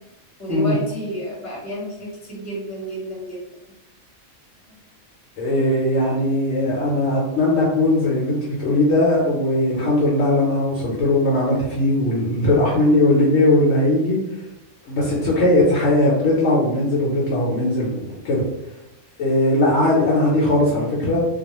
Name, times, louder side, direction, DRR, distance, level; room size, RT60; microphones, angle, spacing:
voice 1, 0.4-3.4 3.7-3.8 4.7-4.8, right 1 dB, 15° left, -6 dB, 0.8 m, -30 dB
voice 2, 5.4-14.2 14.9-18.5 19.2-21.2, left 1 dB, 65° left, -5 dB, 0.8 m, -19 dB
2.3 x 2.2 x 2.9 m, 0.95 s
omnidirectional pair, 1.5 m